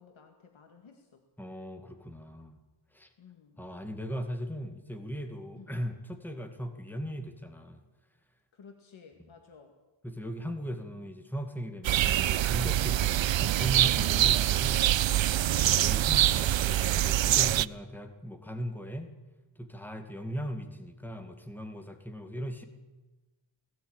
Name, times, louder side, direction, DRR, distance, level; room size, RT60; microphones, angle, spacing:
voice 1, 0.0-1.2 3.2-3.6 5.6-5.7 8.5-9.7, left 6 dB, 85° left, 4 dB, 2.2 m, -54 dB
voice 2, 1.4-2.6 2.9-3.1 3.6-7.8 9.2-9.3 10.0-14.9 15.4-19.1 19.6-22.6, equal, 5° left, 6 dB, 2.1 m, -38 dB
sound 1, 11.8-17.7, right 13 dB, 75° right, 0.6 m, -25 dB
18.5 x 17.0 x 8.9 m, 1.2 s
wide cardioid pair, 155°, 46 cm